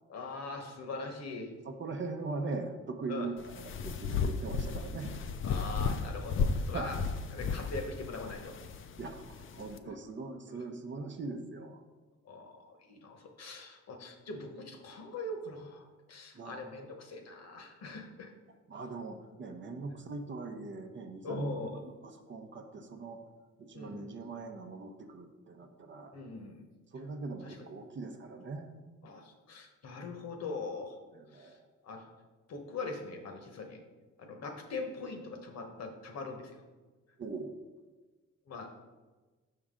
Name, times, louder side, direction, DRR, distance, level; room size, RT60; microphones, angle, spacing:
voice 1, 0.1-1.5 3.1-3.3 5.4-7.0 7.3-8.6 9.8-9.9 10.5-10.6 12.2-18.3 21.2-21.8 23.7-24.1 26.1-26.7 27.4-27.6 29.0-31.0 31.3-31.6 31.8-32.1 32.5-33.8 34.2-36.6 38.5-38.7, left 3 dB, 60° left, 4 dB, 1.1 m, -42 dB
voice 2, 1.6-5.1 6.7-6.9 9.0-11.8 16.3-16.6 18.7-23.2 23.6-26.1 26.9-28.7 31.1-31.7 37.2-37.6, right 3 dB, 40° right, 5 dB, 0.7 m, -41 dB
sound 1, 3.4-9.8, left 5 dB, 45° left, 0.5 m, -34 dB
6.1 x 5.5 x 3.7 m, 1.3 s
cardioid pair, 90°, 30 cm